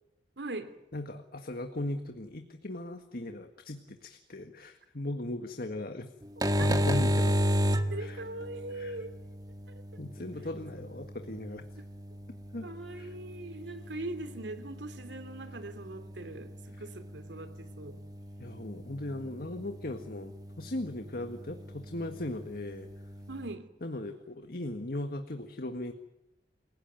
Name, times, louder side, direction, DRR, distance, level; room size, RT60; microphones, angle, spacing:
voice 1, 0.4-0.7 6.6-6.7 7.9-9.2 9.7-9.8 11.8-11.9 12.6-18.0 23.3-23.7, right 2 dB, 85° right, 10 dB, 2.8 m, -41 dB
voice 2, 0.9-6.1 6.6-7.4 8.0-8.2 8.7-9.0 10.0-11.7 12.5-12.7 12.9-13.1 16.7-16.9 18.4-22.9 23.8-25.9, left 1 dB, 55° left, 7 dB, 1.8 m, -38 dB
sound 1, 6.2-23.5, equal, 20° right, 1.8 m, -35 dB
29.0 x 17.5 x 9.3 m, 0.89 s
head